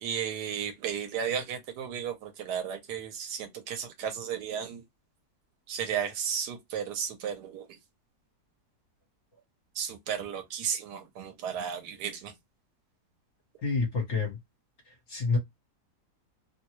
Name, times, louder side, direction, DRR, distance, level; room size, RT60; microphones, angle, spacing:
voice 1, 0.0-4.8 5.7-7.7 9.8-12.3, right 8 dB, 80° right, 1.3 m, -34 dB
voice 2, 13.6-14.4 14.9-15.4, left 4 dB, 50° left, 1.3 m, -28 dB
3.0 x 2.3 x 2.9 m
omnidirectional pair, 1.8 m